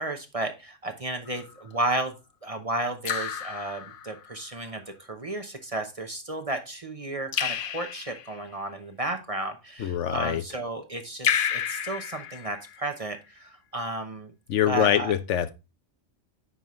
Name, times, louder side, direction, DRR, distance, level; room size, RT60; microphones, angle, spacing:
voice 1, 0.0-2.1 2.4-14.3 14.7-15.2, right 2 dB, 30° right, 0.9 m, -33 dB
Raindrop / Drip, 1.3-1.7 3.0-4.4 7.3-8.4 11.2-13.0, left 8 dB, 55° left, 0.7 m, -31 dB
voice 2, 9.8-10.4 14.5-15.5, left 10 dB, 75° left, 1.0 m, -24 dB
9.6 x 5.4 x 3.1 m
omnidirectional pair, 1.3 m